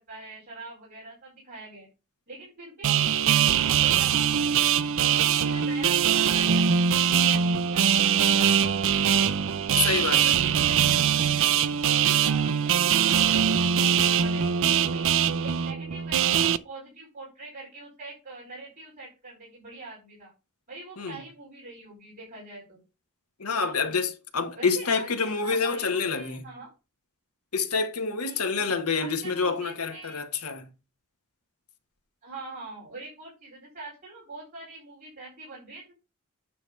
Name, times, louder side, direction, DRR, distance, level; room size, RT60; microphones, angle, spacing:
voice 1, 0.1-1.9 2.3-4.6 5.0-9.3 9.7-15.0 15.4-20.3 20.7-22.8 23.6-24.0 24.5-26.7 28.2-28.7 29.0-30.2 32.2-35.9, right 2 dB, 40° right, 4.2 m, -43 dB
sound 1, 2.8-16.6, right 8 dB, 65° right, 0.5 m, -22 dB
voice 2, 9.8-10.4 21.0-21.2 23.4-26.5 27.5-30.7, left 5 dB, 90° left, 1.5 m, -27 dB
9.4 x 3.2 x 6.6 m
head